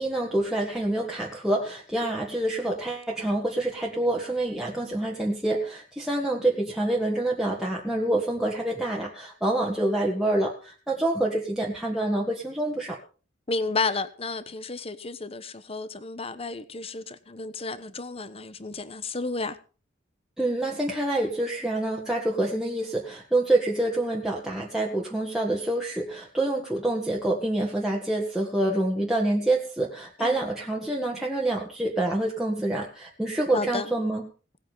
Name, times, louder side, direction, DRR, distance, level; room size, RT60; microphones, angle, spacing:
voice 1, 0.0-13.0 20.4-34.2, right 1 dB, 5° right, 1.8 m, -27 dB
voice 2, 13.5-19.6 30.2-30.4 33.5-33.9, left 3 dB, 30° left, 1.0 m, -32 dB
18.5 x 8.5 x 5.6 m
head